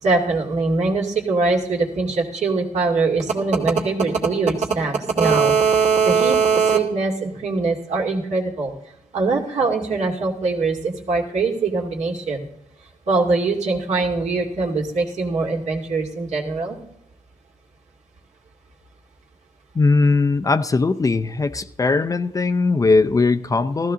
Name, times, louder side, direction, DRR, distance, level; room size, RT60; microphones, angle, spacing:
voice 1, 0.0-8.7 9.1-12.5 13.1-16.8, right 4 dB, 65° right, -1 dB, 2.4 m, -21 dB
voice 2, 19.7-23.9, left 3 dB, 25° left, 11 dB, 0.6 m, -19 dB
15.0 x 13.0 x 3.8 m, 0.82 s
cardioid pair, 80°, 13 cm